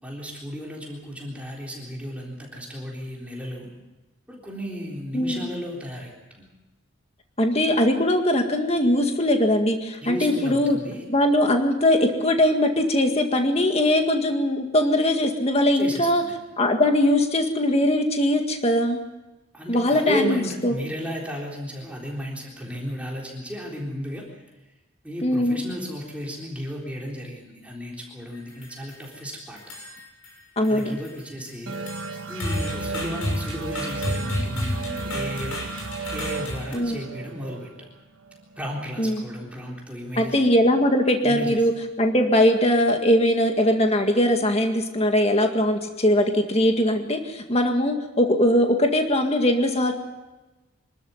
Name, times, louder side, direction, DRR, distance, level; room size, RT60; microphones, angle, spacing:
voice 1, 0.0-3.7 4.3-6.5 10.0-11.0 15.7-16.3 19.5-24.4 25.0-29.6 30.7-31.7 32.3-35.6 36.1-37.9 38.6-40.4 41.2-41.7, equal, 5° right, -3 dB, 3.8 m, -34 dB
voice 2, 7.4-10.8 11.1-16.2 16.6-19.0 19.7-20.4 20.6-20.7 25.2-25.6 30.6-30.9 36.7-37.0 39.0-39.2 40.2-41.7 42.0-49.9, left 1 dB, 30° left, 4 dB, 2.0 m, -21 dB
sound 1, 28.3-29.1 29.6-30.4 30.6-36.7, left 1 dB, 80° left, 6.9 m, -32 dB
sound 2, 31.7-38.9, right 4 dB, 65° right, 1.3 m, -34 dB
25.5 x 13.0 x 9.5 m, 1.1 s
head